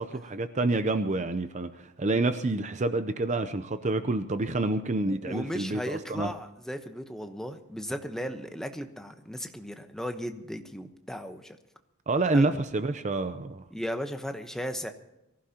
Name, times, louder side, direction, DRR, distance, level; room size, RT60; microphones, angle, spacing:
voice 1, 0.0-6.3 12.1-13.6, right 2 dB, 35° right, 0.6 m, -28 dB
voice 2, 5.1-11.6 12.3-12.5 13.7-14.9, equal, ahead, 1.0 m, -36 dB
23.5 x 15.5 x 2.9 m
head